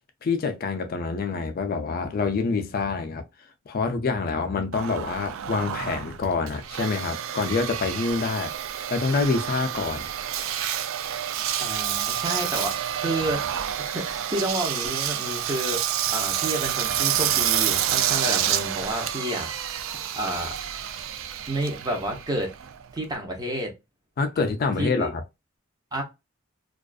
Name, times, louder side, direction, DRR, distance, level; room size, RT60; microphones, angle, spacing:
voice 1, 0.2-3.2 3.7-8.5 8.9-10.1 24.2-25.2, left 4 dB, 50° left, 0.4 m, -26 dB
Engine, 4.7-23.2, right 10 dB, 70° right, 0.3 m, -28 dB
voice 2, 11.6-13.4 13.8-15.8 16.1-20.5 21.5-22.5 22.9-23.7 24.8-25.1 25.9-26.0, right 1 dB, 20° right, 0.7 m, -30 dB
2.4 x 2.3 x 2.3 m
head